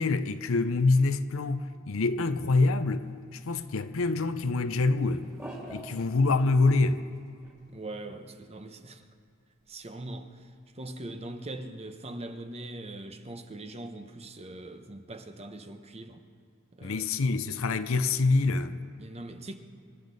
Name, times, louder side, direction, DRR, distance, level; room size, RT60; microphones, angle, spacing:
voice 1, 0.0-5.3 5.7-7.0 16.8-18.8, left 3 dB, 65° left, 0.6 m, -26 dB
sound 1, 3.5-4.4 4.7-6.4 6.7-7.6 7.9-8.0 8.2-8.3 9.7-9.8 10.0-10.1 10.3-10.4, right 1 dB, 10° right, 2.4 m, -47 dB
voice 2, 7.7-9.0 9.7-16.2 16.7-17.3 19.0-19.6, right 2 dB, 30° right, 0.8 m, -42 dB
26.0 x 12.5 x 4.0 m
head